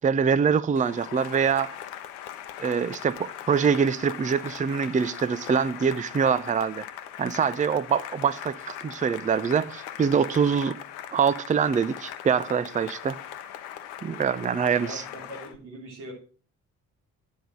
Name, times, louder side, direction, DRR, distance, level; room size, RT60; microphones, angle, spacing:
voice 1, 0.0-1.8 2.6-6.8 7.2-10.8 11.1-13.2 14.0-15.0, right 6 dB, 20° right, 0.6 m, -24 dB
Cheering / Applause, 0.7-15.6, left 11 dB, 65° left, 0.9 m, -40 dB
voice 2, 14.7-16.1, right 1 dB, 70° right, 3.3 m, -42 dB
10.0 x 5.5 x 7.7 m
figure-of-eight pair, 40°, 42 cm